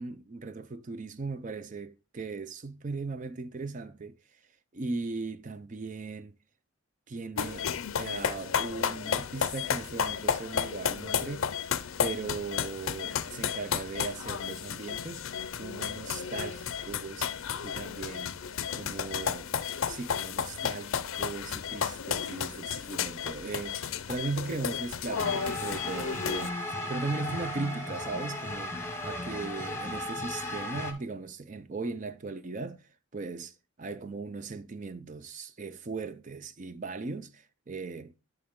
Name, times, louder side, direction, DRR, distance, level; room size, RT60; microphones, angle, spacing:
voice 1, 0.0-4.2 4.7-6.3 7.1-11.5 12.0-15.3 15.6-17.3 17.6-18.4 18.7-19.5 19.9-26.6 26.9-28.8 29.0-32.8 33.1-33.5 33.8-38.2, right 3 dB, 35° right, 0.5 m, -38 dB
sound 1, 7.4-26.5, left 7 dB, 75° left, 0.5 m, -33 dB
sound 2, 25.1-30.9, left 1 dB, 10° left, 1.1 m, -36 dB
11.0 x 3.8 x 3.6 m
head